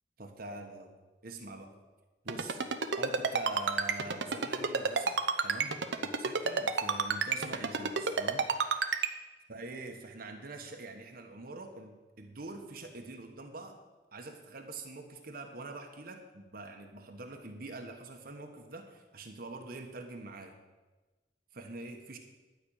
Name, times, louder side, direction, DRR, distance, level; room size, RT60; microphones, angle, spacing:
voice 1, 0.2-0.9 1.2-1.7 2.2-2.6 3.0-8.5 9.5-13.8 14.1-20.6 21.5-22.2, right 2 dB, 55° right, 3 dB, 1.2 m, -45 dB
Ringtone, 2.3-9.1, right 5 dB, 80° right, 0.8 m, -29 dB
12.0 x 5.4 x 8.8 m, 1.2 s
head